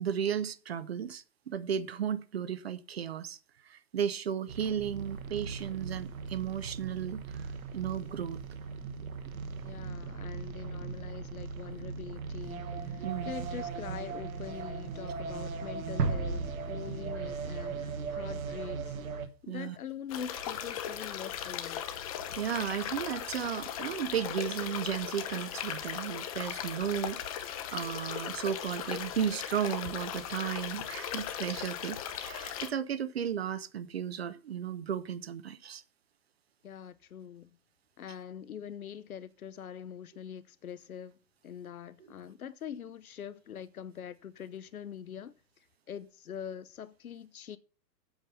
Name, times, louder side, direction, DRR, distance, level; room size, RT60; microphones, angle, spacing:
voice 1, 0.0-3.4 3.6-7.5 7.7-8.4 9.2-9.3 13.0-13.3 19.5-19.8 22.4-35.8, right 8 dB, 40° right, 0.6 m, -34 dB
sound 1, 4.5-19.3, right 5 dB, 55° right, 1.2 m, -39 dB
voice 2, 9.6-21.8 36.6-37.5 38.0-41.2 41.4-45.3 45.9-47.6, left 8 dB, 60° left, 0.8 m, -43 dB
sound 2, 16.0-18.8, right 4 dB, 70° right, 1.0 m, -35 dB
sound 3, 20.1-32.7, left 9 dB, 25° left, 0.7 m, -38 dB
8.0 x 5.4 x 7.7 m
figure-of-eight pair, 115°, 50 cm